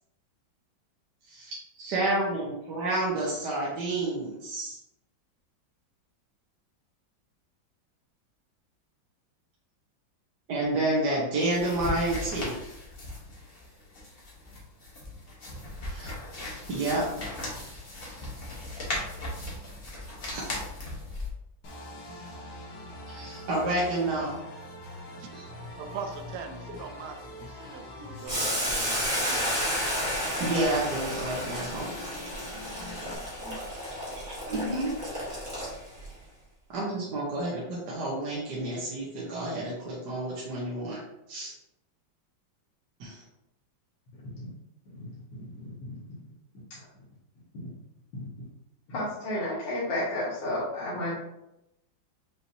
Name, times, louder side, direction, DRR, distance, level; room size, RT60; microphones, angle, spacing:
voice 1, 1.3-4.8 10.5-12.5 15.9-16.1 16.7-17.0 20.3-20.4 23.1-24.4 25.3-25.5 29.0-29.2 30.4-32.1 34.5-34.9 36.7-41.0 41.3-41.5 43.0-43.2, right 2 dB, 60° right, -5 dB, 1.4 m, -30 dB
sound 1, 11.4-21.3, left 1 dB, 40° left, 0.9 m, -38 dB
sound 2, 21.6-33.2, left 1 dB, 85° left, 1.8 m, -43 dB
voice 2, 25.8-29.9 33.0-33.9, right 5 dB, 85° right, 5 dB, 0.8 m, -42 dB
Boiling, 28.3-36.1, equal, 10° right, 1.0 m, -32 dB
voice 3, 44.9-46.1 48.1-48.3 48.9-51.1, left 1 dB, 65° left, -9 dB, 1.9 m, -33 dB
5.5 x 3.0 x 2.7 m, 0.85 s
omnidirectional pair, 2.2 m